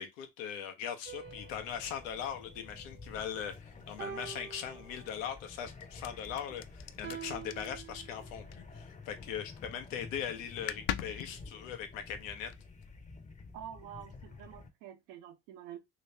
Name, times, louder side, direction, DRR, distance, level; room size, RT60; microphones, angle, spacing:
voice 1, 0.0-12.5, left 8 dB, 90° left, 0.9 m, -40 dB
sound 1, 1.0-3.4 4.0-5.5 7.0-8.5, right 8 dB, 25° right, 0.7 m, -48 dB
sound 2, 1.2-14.7, left 4 dB, 20° left, 0.7 m, -51 dB
sound 3, 1.5-9.2 9.5-9.9 10.2-10.3 10.5-12.9, left 12 dB, 65° left, 0.5 m, -44 dB
voice 2, 13.5-15.8, right 10 dB, 80° right, 0.9 m, -47 dB
2.9 x 2.7 x 3.2 m
supercardioid pair, 100°, 39 cm